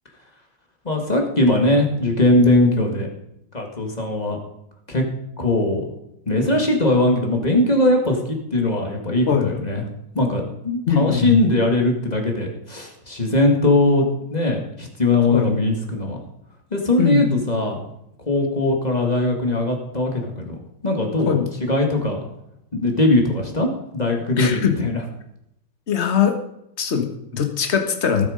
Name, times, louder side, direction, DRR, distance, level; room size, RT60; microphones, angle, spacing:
voice 1, 0.8-3.1 3.5-4.4 4.9-5.0 5.4-5.8 6.3-9.8 10.1-16.2 16.7-17.8 18.2-20.6 20.8-22.2 22.7-25.0, left 2 dB, 20° left, 2 dB, 2.1 m, -20 dB
voice 2, 10.9-11.4 15.3-15.5 17.0-17.4 21.2-21.5 24.4-24.8 25.9-26.4 26.8-28.3, left 8 dB, 40° left, 5 dB, 1.6 m, -21 dB
17.5 x 7.9 x 5.2 m, 0.80 s
omnidirectional pair, 2.0 m